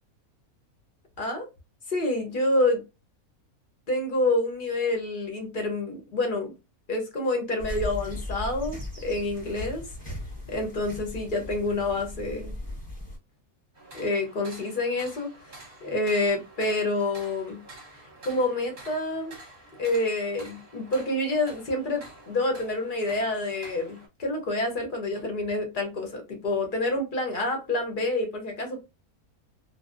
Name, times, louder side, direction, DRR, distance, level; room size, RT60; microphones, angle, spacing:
voice 1, 1.9-2.8 3.9-6.5 6.9-9.8 10.5-12.5 13.9-17.6 18.2-19.3 19.8-28.9, left 2 dB, 55° left, 0.5 m, -28 dB
sound 1, 7.6-13.2, left 1 dB, 5° left, 0.7 m, -37 dB
sound 2, 13.7-24.1, right 2 dB, 45° right, 0.8 m, -48 dB
2.6 x 2.0 x 2.4 m
omnidirectional pair, 1.5 m